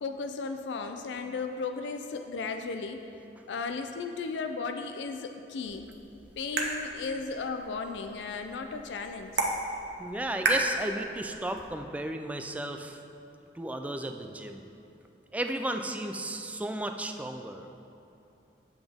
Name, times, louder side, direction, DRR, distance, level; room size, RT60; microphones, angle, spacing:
voice 1, 0.0-3.1 3.5-5.8 6.4-9.4, left 4 dB, 90° left, 6 dB, 0.4 m, -35 dB
sound 1, 5.7-11.7, right 2 dB, 75° right, 0.9 m, -34 dB
voice 2, 10.0-13.0 13.5-14.7 15.3-17.7, right 1 dB, 10° right, 6 dB, 0.3 m, -34 dB
7.9 x 7.0 x 3.5 m, 2.8 s
head